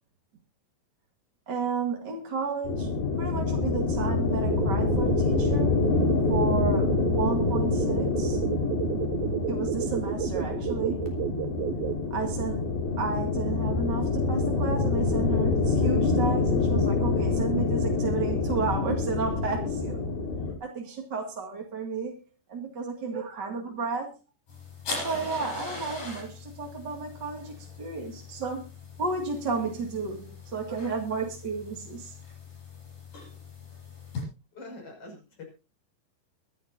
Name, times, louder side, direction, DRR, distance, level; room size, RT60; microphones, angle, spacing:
voice 1, 1.5-5.8 6.3-8.4 9.5-11.2 12.1-20.1 20.6-24.2 25.0-28.7 29.0-32.2, right 4 dB, 35° right, 2.2 m, -32 dB
sound 1, 2.6-20.5, left 4 dB, 85° left, 5.1 m, -26 dB
sound 2, 4.5-12.0, right 11 dB, 80° right, 2.7 m, -32 dB
sound 3, 24.5-34.2, left 3 dB, 60° left, 8.9 m, -41 dB
voice 2, 34.5-35.4, left 2 dB, 35° left, 6.8 m, -44 dB
24.0 x 11.0 x 2.6 m
omnidirectional pair, 4.3 m